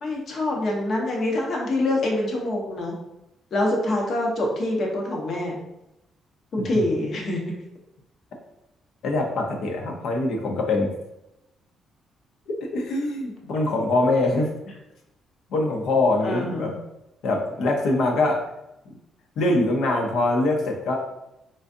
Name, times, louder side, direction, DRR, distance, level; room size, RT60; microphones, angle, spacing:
voice 1, 0.0-2.9 3.5-5.5 6.6-7.4 16.2-16.7, left 1 dB, 55° left, -1 dB, 1.0 m, -25 dB
voice 2, 9.0-10.9 12.5-14.5 15.5-16.7 17.2-18.4 19.4-21.0, left 2 dB, 75° left, 2 dB, 0.7 m, -23 dB
3.8 x 2.5 x 2.6 m, 0.89 s
cardioid pair, 90°, 0 cm